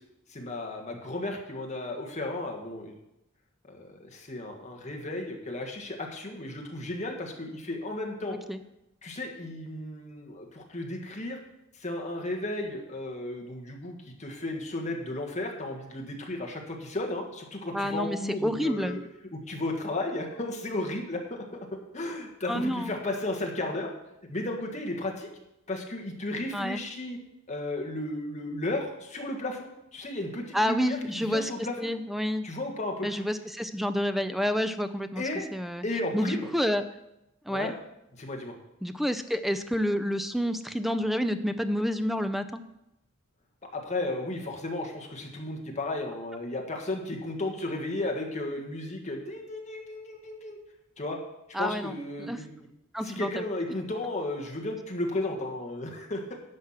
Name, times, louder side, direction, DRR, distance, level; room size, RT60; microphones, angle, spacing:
voice 1, 0.3-2.9 3.7-8.4 9.0-11.4 11.7-19.0 19.3-21.4 21.9-23.9 24.3-25.3 25.7-27.2 27.5-31.9 32.4-33.1 35.2-35.4 35.8-36.5 37.5-37.7 38.1-38.5 43.7-50.6 51.0-51.2 51.6-52.6 53.0-56.4, left 2 dB, 35° left, 1 dB, 1.6 m, -34 dB
voice 2, 17.7-19.0 22.5-22.9 26.5-26.8 30.5-31.5 31.8-32.4 33.0-35.2 35.5-35.8 36.1-36.8 37.5-37.7 38.8-42.6 51.5-52.4 52.9-53.4, equal, ahead, 10 dB, 0.5 m, -29 dB
10.5 x 6.3 x 5.8 m, 0.87 s
head